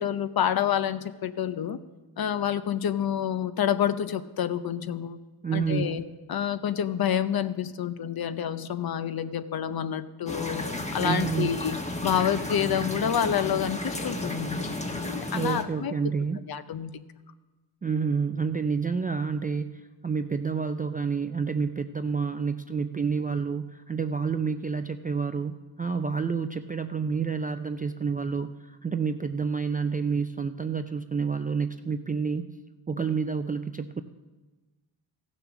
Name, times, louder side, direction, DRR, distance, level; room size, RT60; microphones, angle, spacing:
voice 1, 0.0-1.8 2.2-5.2 5.5-6.0 6.3-10.7 10.9-11.8 12.0-15.9 16.5-16.9, left 9 dB, 50° left, 12 dB, 0.7 m, -28 dB
voice 2, 5.4-6.0 11.0-11.5 15.3-16.4 17.8-32.5 32.9-34.0, right 5 dB, 20° right, 8 dB, 0.3 m, -29 dB
sound 1, 10.3-15.6, left 1 dB, 15° left, 1.2 m, -33 dB
15.0 x 6.8 x 6.0 m, 1.2 s
cardioid pair, 80°, 49 cm